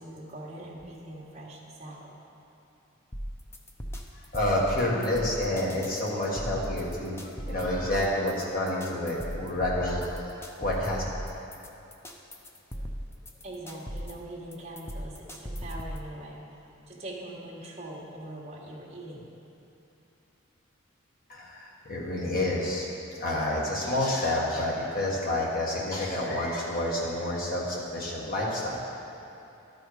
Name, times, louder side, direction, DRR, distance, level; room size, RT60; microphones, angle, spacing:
voice 1, 0.0-2.1 12.7-12.8 13.4-16.4 16.9-19.3, right 1 dB, 30° right, -5 dB, 1.4 m, -42 dB
sound 1, 3.1-16.1, equal, 10° left, 0.5 m, -38 dB
voice 2, 4.3-7.2 7.5-10.2 10.6-11.0 21.3-22.8 23.2-28.7, left 1 dB, 45° left, -5 dB, 1.6 m, -29 dB
12.5 x 4.4 x 4.9 m, 3.0 s
head